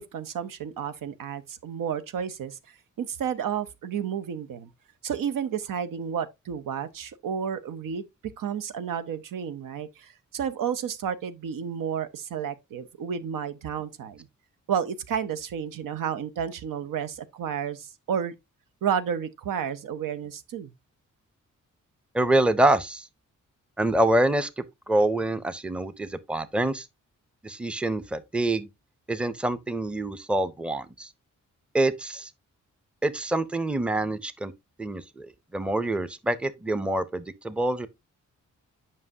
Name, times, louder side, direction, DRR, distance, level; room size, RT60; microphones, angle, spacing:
voice 1, 0.0-4.7 5.0-8.0 8.4-14.3 14.7-18.3 18.8-20.7, right 8 dB, 85° right, 0.7 m, -31 dB
voice 2, 22.1-23.1 23.8-26.9 27.4-28.7 29.1-31.1 31.7-32.3 33.0-34.5 34.8-37.9, right 1 dB, 5° right, 0.5 m, -26 dB
7.5 x 5.5 x 2.6 m
cardioid pair, 75°, 32 cm